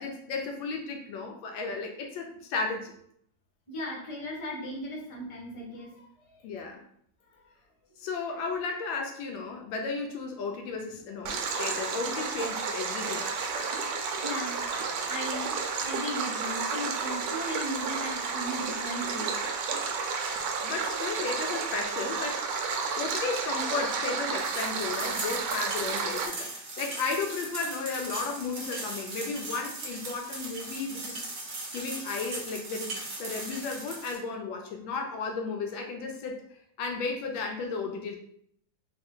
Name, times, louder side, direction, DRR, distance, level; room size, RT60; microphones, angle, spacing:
voice 1, 0.0-2.9 6.4-6.8 8.0-13.3 20.6-22.5 23.0-31.2 31.7-36.5 36.8-38.2, left 4 dB, 75° left, 3 dB, 1.3 m, -34 dB
voice 2, 3.7-6.4 11.3-11.4 13.6-19.3, equal, 25° left, -4 dB, 0.7 m, -37 dB
Stream, 11.3-26.3, right 5 dB, 75° right, 1.1 m, -31 dB
sound 1, 24.4-34.2, right 2 dB, 45° right, 0.9 m, -38 dB
3.4 x 2.5 x 3.6 m, 0.69 s
omnidirectional pair, 2.2 m